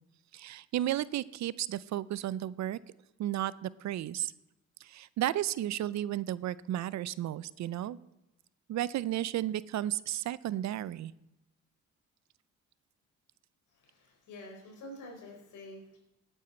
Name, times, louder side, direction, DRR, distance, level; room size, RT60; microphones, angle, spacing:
voice 1, 0.3-2.8 3.2-4.3 4.8-8.0 8.7-11.1, right 13 dB, 65° right, 19 dB, 0.5 m, -33 dB
voice 2, 13.7-16.0, left 1 dB, 80° left, 0 dB, 4.5 m, -48 dB
17.0 x 9.1 x 4.3 m, 0.91 s
cardioid pair, 90°, 30 cm